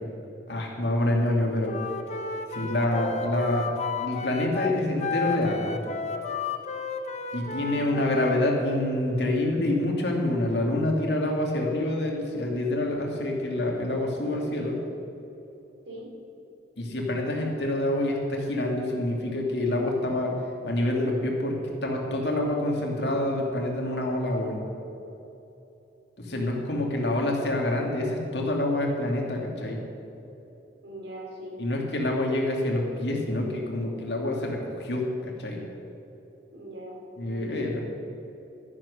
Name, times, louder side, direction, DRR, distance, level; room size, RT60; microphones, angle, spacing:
voice 1, 0.5-1.8 2.5-5.8 7.3-14.8 16.8-20.4 20.6-24.6 26.2-29.8 31.6-35.6 37.2-37.8, left 1 dB, 70° left, 0 dB, 2.4 m, -27 dB
Wind instrument woodwind instrument, 1.6-8.4, left 5 dB, 40° left, 0.8 m, -33 dB
voice 2, 7.7-8.0 15.9-16.1 30.8-31.6 36.5-37.7, right 1 dB, 80° right, -2 dB, 3.6 m, -41 dB
12.5 x 10.5 x 6.6 m, 2.9 s
head